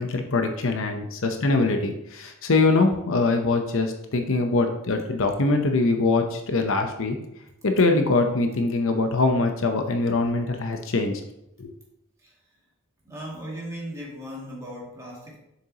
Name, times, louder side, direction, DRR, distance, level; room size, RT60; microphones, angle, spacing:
voice 1, 0.0-7.2 7.6-11.2 11.6-11.7, left 3 dB, 65° left, 5 dB, 0.8 m, -23 dB
voice 2, 13.0-15.4, equal, 15° right, -5 dB, 2.2 m, -37 dB
7.0 x 6.5 x 2.9 m, 0.83 s
head